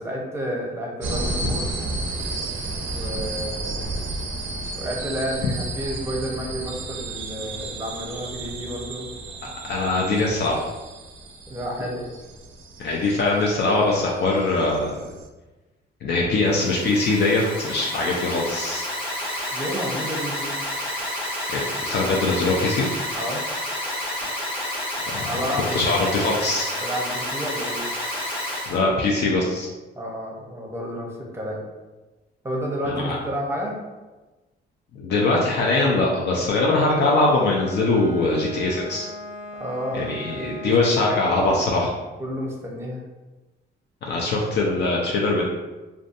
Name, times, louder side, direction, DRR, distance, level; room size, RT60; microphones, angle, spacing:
voice 1, 0.0-1.7 2.9-3.9 4.8-9.1 11.5-12.1 19.5-20.6 23.1-23.4 25.2-27.9 29.9-31.6 32.4-33.8 39.6-40.7 42.2-43.1, equal, 15° right, -1 dB, 0.6 m, -31 dB
sound 1, 1.0-15.3, right 2 dB, 70° right, 0.4 m, -33 dB
voice 2, 9.6-10.5 12.8-15.1 16.0-18.9 21.5-22.9 25.1-26.7 28.7-29.7 32.8-33.2 34.9-39.1 39.9-41.9 44.0-45.4, left 2 dB, 60° left, -2 dB, 0.4 m, -22 dB
Alarm, 16.4-28.8, left 1 dB, 25° left, 1.3 m, -30 dB
Bowed string instrument, 36.9-41.2, left 1 dB, 85° left, 1.2 m, -39 dB
2.6 x 2.2 x 2.5 m, 1.2 s
cardioid pair, 90°, 20 cm